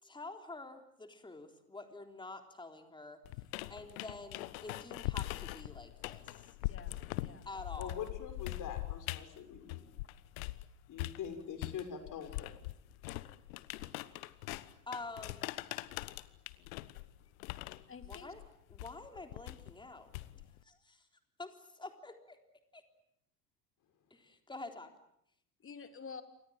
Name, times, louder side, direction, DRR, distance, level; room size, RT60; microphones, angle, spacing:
voice 1, 0.0-3.2 3.7-6.5 7.5-8.0 14.9-15.5 18.1-18.4 18.7-20.1 20.6-21.1 21.4-22.4 22.7-22.8 24.1-24.9, left 3 dB, 10° left, 5 dB, 3.7 m, -48 dB
sound 1, 3.3-10.6 11.0-20.6, left 18 dB, 60° left, 1.3 m, -42 dB
voice 2, 6.7-7.5 17.2-17.3 17.9-18.3 25.6-26.2, left 5 dB, 30° left, 8 dB, 3.4 m, -50 dB
voice 3, 7.8-9.9 10.9-12.5, left 7 dB, 45° left, 7 dB, 6.6 m, -43 dB
28.5 x 25.0 x 7.6 m, 0.75 s
figure-of-eight pair, 75°, 45 cm